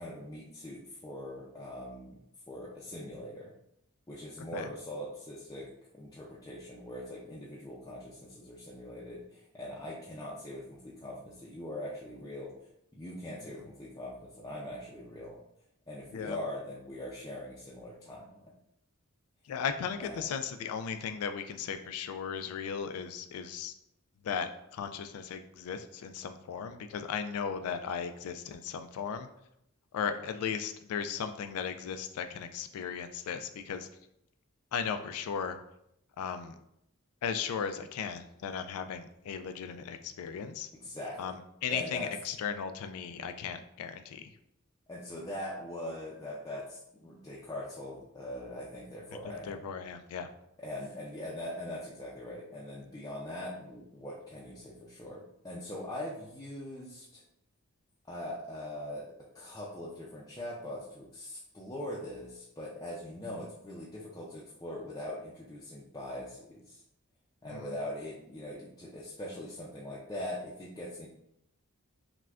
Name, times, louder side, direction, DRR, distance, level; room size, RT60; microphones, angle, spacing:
voice 1, 0.0-2.1 2.5-3.5 4.1-12.5 12.9-15.4 15.9-18.5 20.0-20.2 40.8-41.3 41.7-42.1 44.9-49.6 50.6-57.2 58.1-59.1 59.3-66.8 67.4-71.1, left 1 dB, 15° left, -5 dB, 0.4 m, -42 dB
voice 2, 19.5-23.7 24.2-29.3 29.9-33.9 34.7-35.6 36.2-36.6 37.2-40.7 41.2-44.3 49.3-50.3 67.5-67.7, left 7 dB, 85° left, 9 dB, 0.3 m, -36 dB
5.8 x 2.2 x 2.4 m, 0.78 s
head